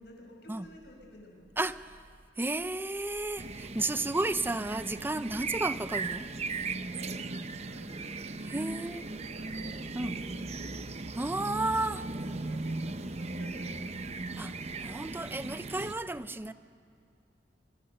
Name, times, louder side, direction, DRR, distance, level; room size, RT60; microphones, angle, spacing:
voice 1, 0.0-1.6 6.6-8.2 8.7-10.7 12.3-14.1 16.0-16.4, left 1 dB, 70° left, 1 dB, 6.1 m, -53 dB
voice 2, 1.6-2.0 2.4-6.3 8.4-9.0 10.0-10.1 11.2-12.1 14.4-14.5 14.8-16.5, right 2 dB, 10° right, 13 dB, 0.5 m, -32 dB
sound 1, 3.4-15.9, right 3 dB, 40° right, 0.8 m, -37 dB
26.0 x 25.0 x 6.7 m, 2.4 s
head